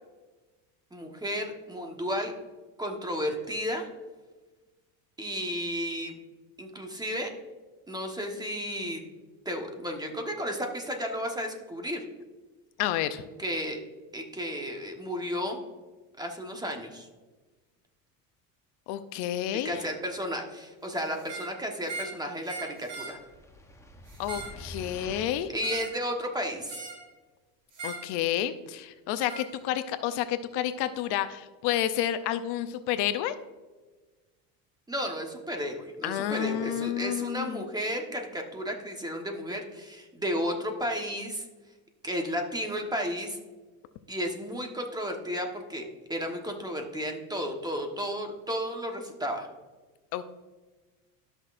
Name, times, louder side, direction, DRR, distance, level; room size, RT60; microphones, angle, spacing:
voice 1, 0.9-2.3 2.8-3.9 5.2-6.2 6.6-7.3 7.9-9.0 9.4-12.0 13.4-13.8 14.1-15.6 16.2-17.1 19.5-23.2 25.5-26.8 34.9-41.5 42.0-43.4 44.1-45.8 46.1-49.5, equal, 10° right, 3 dB, 1.2 m, -33 dB
voice 2, 12.8-13.2 18.9-19.8 24.2-25.5 27.8-33.3 36.0-37.6 50.1-50.2, left 11 dB, 60° left, 11 dB, 0.6 m, -30 dB
sound 1, 21.2-21.5 21.8-22.2 22.5-23.2 24.1-24.6 25.6-26.0 26.7-27.1 27.7-28.1 29.3-29.5, right 3 dB, 45° right, 2.8 m, -39 dB
sound 2, 23.1-25.7, left 1 dB, 5° left, 0.9 m, -46 dB
13.0 x 6.2 x 2.5 m, 1.3 s
supercardioid pair, 110°, 44 cm